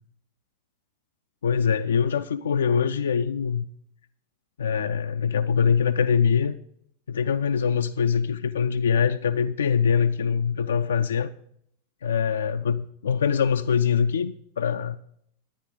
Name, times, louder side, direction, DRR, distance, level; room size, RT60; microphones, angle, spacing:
voice 1, 1.4-3.6 4.6-6.6 7.1-11.3 12.0-15.0, left 6 dB, 65° left, 7 dB, 0.3 m, -23 dB
10.5 x 10.0 x 3.8 m, 0.69 s
figure-of-eight pair, 90°, 0 cm